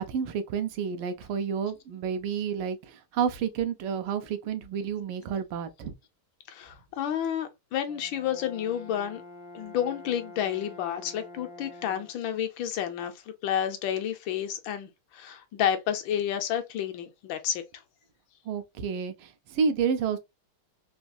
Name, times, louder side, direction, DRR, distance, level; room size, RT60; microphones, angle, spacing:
voice 1, 0.0-5.9 18.5-20.2, right 6 dB, 85° right, 1.5 m, -30 dB
voice 2, 6.5-9.2 9.5-13.1 13.4-17.6, left 10 dB, 75° left, 1.3 m, -30 dB
Brass instrument, 7.9-12.3, left 2 dB, 5° right, 0.5 m, -47 dB
4.1 x 2.3 x 2.6 m
omnidirectional pair, 2.3 m